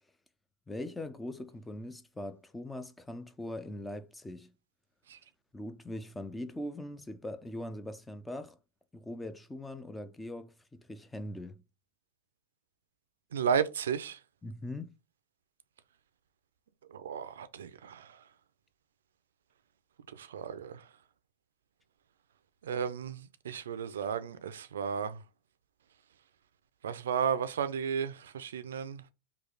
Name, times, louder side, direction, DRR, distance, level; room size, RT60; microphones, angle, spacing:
voice 1, 0.7-4.6 5.5-8.6 8.9-11.6 14.4-14.9, left 1 dB, 10° left, 0.4 m, -41 dB
voice 2, 13.3-14.2 16.9-18.2 20.1-20.8 22.6-25.2 26.8-29.0, right 7 dB, 90° right, 0.4 m, -33 dB
3.2 x 2.3 x 3.8 m
hypercardioid pair, 125°, 0 cm